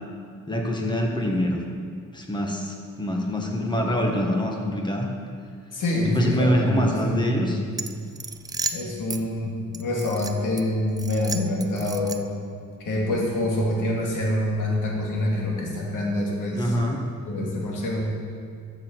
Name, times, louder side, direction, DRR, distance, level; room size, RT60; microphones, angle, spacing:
voice 1, 0.5-1.6 2.1-5.1 6.1-7.6 16.5-17.1, equal, 15° left, 1 dB, 1.4 m, -25 dB
voice 2, 5.7-7.6 8.7-12.3 12.8-16.8 17.2-18.1, left 1 dB, 85° left, -2 dB, 2.1 m, -26 dB
sound 1, 7.7-9.2 9.7-10.6 11.0-12.4, right 3 dB, 15° right, 0.3 m, -33 dB
13.5 x 6.5 x 4.5 m, 2.2 s
wide cardioid pair, 125°, 31 cm